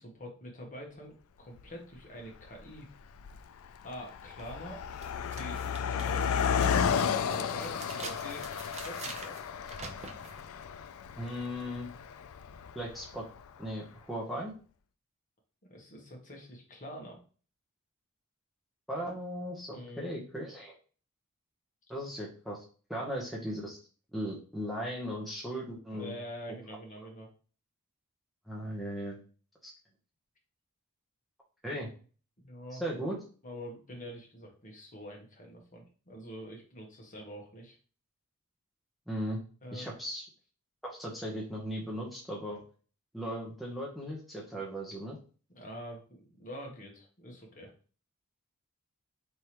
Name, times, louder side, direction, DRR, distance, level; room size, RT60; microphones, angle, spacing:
voice 1, 0.0-2.9 3.8-4.8 5.4-6.4 6.7-9.4 15.7-17.2 19.7-20.1 25.9-27.3 32.4-32.8 33.4-37.8 39.6-39.9 45.5-47.7, equal, 35° left, 1 dB, 1.2 m, -45 dB
Car passing by, 1.6-1.7 2.5-2.7 3.0-13.4, left 7 dB, 65° left, 0.4 m, -33 dB
sound 1, 4.4-4.5 5.0-10.4, right 4 dB, 30° right, 0.6 m, -46 dB
voice 2, 11.2-11.9 12.7-13.2 13.6-14.5 18.9-20.7 21.9-22.6 22.9-23.8 24.1-26.1 28.5-29.2 29.6-29.7 31.6-31.9 32.7-33.2 39.1-39.4 39.7-40.2 40.8-42.6 43.1-45.2, equal, ahead, -4 dB, 0.9 m, -37 dB
4.6 x 3.5 x 2.9 m, 0.39 s
head